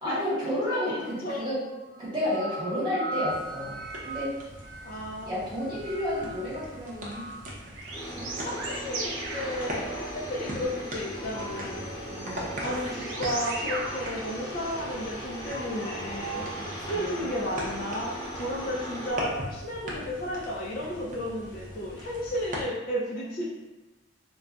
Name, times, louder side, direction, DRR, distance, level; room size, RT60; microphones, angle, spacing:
voice 1, 0.0-1.6 2.0-4.3 5.2-7.3 8.1-8.3 12.1-12.5 16.9-17.3 23.1-23.4, left 1 dB, 25° right, -8 dB, 1.0 m, -31 dB
sound 1, 0.6-1.2 1.5-5.1 5.5-10.7 11.0-16.7 18.1-18.3, right 2 dB, 85° right, 0.5 m, -39 dB
voice 2, 0.8-1.4 4.8-5.4 8.4-11.8 12.6-16.5 16.9-23.4, equal, 45° left, -5 dB, 0.4 m, -33 dB
sound 2, 3.3-22.7, equal, 40° right, 0.6 m, -41 dB
sound 3, 7.9-19.1, equal, 20° left, 0.7 m, -38 dB
2.3 x 2.2 x 3.8 m, 1.1 s
head